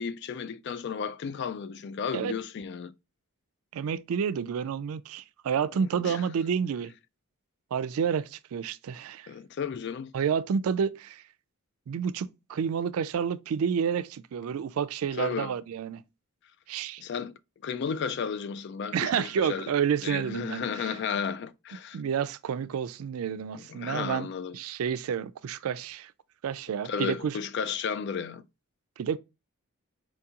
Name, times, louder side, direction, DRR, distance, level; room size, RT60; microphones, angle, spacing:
voice 1, 0.0-2.9 5.8-6.2 9.3-10.1 15.2-15.5 17.0-17.3 17.6-19.7 20.0-22.0 23.5-24.6 26.8-28.4, left 6 dB, 55° left, 0.3 m, -33 dB
voice 2, 3.7-6.9 7.7-9.3 10.1-11.2 11.9-16.0 16.7-17.0 18.9-20.9 21.9-24.3 24.5-26.1 26.4-27.4 29.0-29.2, right 7 dB, 80° right, 0.3 m, -29 dB
4.5 x 2.8 x 2.3 m
head